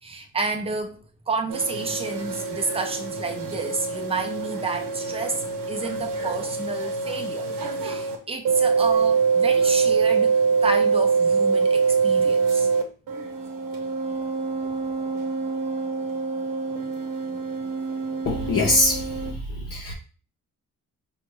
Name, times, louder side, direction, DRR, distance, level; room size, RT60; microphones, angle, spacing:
voice 1, 0.0-7.5 7.8-12.7 14.6-14.8, right 3 dB, 20° right, 4 dB, 0.6 m, -30 dB
sound 1, 1.5-8.2 8.4-12.8 13.1-19.3, right 5 dB, 75° right, 0.8 m, -24 dB
voice 2, 18.3-19.4 19.7-19.9, left 2 dB, 45° left, -2 dB, 0.8 m, -23 dB
4.9 x 2.3 x 3.1 m, 0.37 s
cardioid pair, 135°, 33 cm